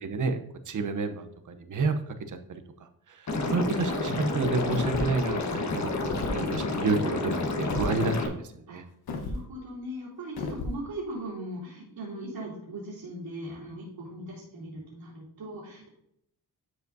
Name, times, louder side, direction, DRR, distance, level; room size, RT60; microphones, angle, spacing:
voice 1, 0.0-0.4 0.7-1.3 1.6-2.0 2.5-2.6 3.1-3.2 3.5-8.4 8.7-8.8, right 3 dB, 55° right, 8 dB, 0.9 m, -29 dB
Liquid, 3.3-8.3, left 2 dB, 50° left, 1.3 m, -29 dB
sound 1, 4.7-5.2 6.0-6.4 7.7-7.9 9.1-9.4 10.4-10.8, left 3 dB, 80° left, 1.1 m, -33 dB
voice 2, 9.1-16.0, right 1 dB, 85° right, -8 dB, 3.3 m, -39 dB
12.0 x 4.9 x 2.7 m, 0.73 s
wide cardioid pair, 120°, 37 cm